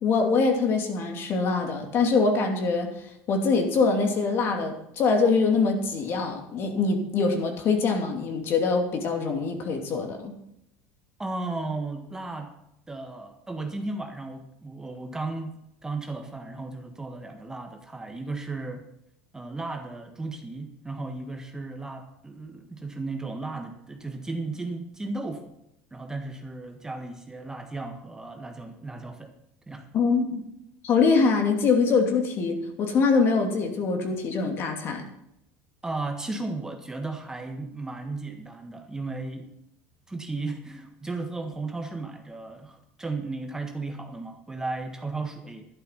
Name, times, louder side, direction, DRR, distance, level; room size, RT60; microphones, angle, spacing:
voice 1, 0.0-2.9 3.3-10.3 29.9-30.4 30.8-35.0, left 4 dB, 45° left, 4 dB, 2.8 m, -24 dB
voice 2, 11.2-12.5 12.9-15.5 15.8-18.9 19.3-25.5 25.9-29.3 29.7-29.9 35.8-39.5 40.1-45.7, right 3 dB, 10° right, 4 dB, 1.6 m, -35 dB
12.0 x 11.0 x 5.9 m, 0.79 s
supercardioid pair, 115°, 5 cm